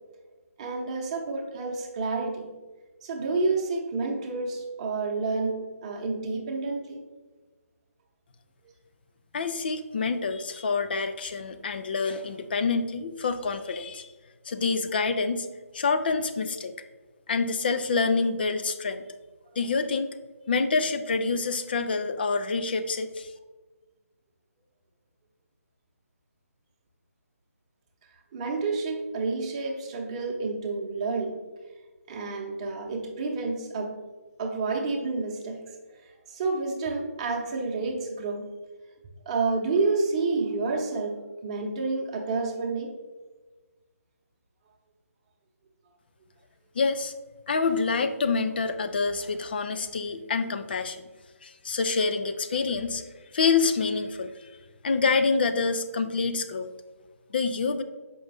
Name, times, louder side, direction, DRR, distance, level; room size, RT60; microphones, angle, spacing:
voice 1, 0.6-2.5 3.0-7.0 28.3-31.4 32.1-34.0 34.4-35.6 36.0-38.5 39.3-43.0, right 3 dB, 25° right, 1 dB, 0.9 m, -29 dB
voice 2, 9.3-14.1 14.5-15.5 15.7-16.7 17.3-19.0 19.6-20.1 20.5-23.3 46.7-47.1 47.5-51.1 51.4-53.0 53.3-54.5 54.8-56.7 57.3-57.8, left 4 dB, 40° left, 9 dB, 0.5 m, -27 dB
6.9 x 5.3 x 3.4 m, 1.3 s
figure-of-eight pair, 150°, 8 cm